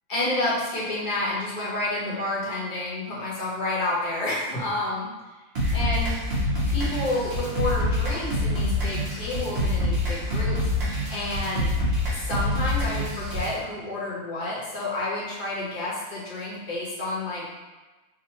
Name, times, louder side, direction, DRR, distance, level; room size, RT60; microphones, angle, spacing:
voice 1, 0.1-5.1 5.7-6.1 6.7-10.6 11.1-11.7 12.1-17.4, left 2 dB, 40° left, -7 dB, 1.0 m, -29 dB
sound 1, 5.6-13.5, left 1 dB, 50° right, 1.1 m, -26 dB
4.9 x 2.1 x 2.9 m, 1.2 s
omnidirectional pair, 1.5 m